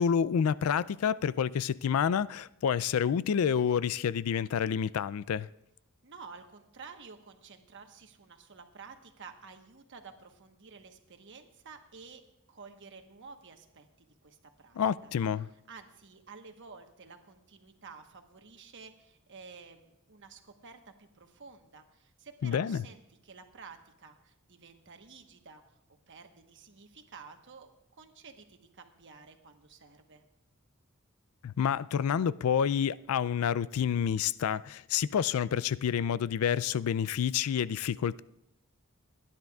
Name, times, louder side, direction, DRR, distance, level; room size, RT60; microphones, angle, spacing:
voice 1, 0.0-5.5 14.8-15.5 22.4-22.8 31.4-38.2, left 8 dB, 80° left, 0.4 m, -28 dB
voice 2, 6.0-12.2 12.5-15.1 15.7-25.6 25.9-30.2, right 5 dB, 60° right, 1.2 m, -51 dB
29.0 x 10.5 x 2.4 m
head